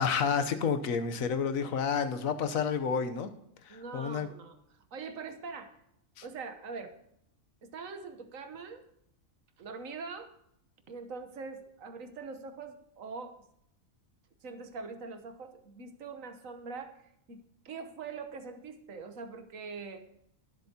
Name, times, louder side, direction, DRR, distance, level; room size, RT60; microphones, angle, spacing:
voice 1, 0.0-3.3 3.6-4.3 6.2-6.3, left 6 dB, 85° left, 10 dB, 1.3 m, -30 dB
voice 2, 3.7-4.6 4.9-5.7 6.2-6.9 7.6-8.9 9.6-10.3 10.9-13.4 14.4-17.0 17.3-20.1, right 4 dB, 75° right, 8 dB, 1.4 m, -43 dB
21.0 x 7.9 x 2.8 m, 0.75 s
omnidirectional pair, 1.4 m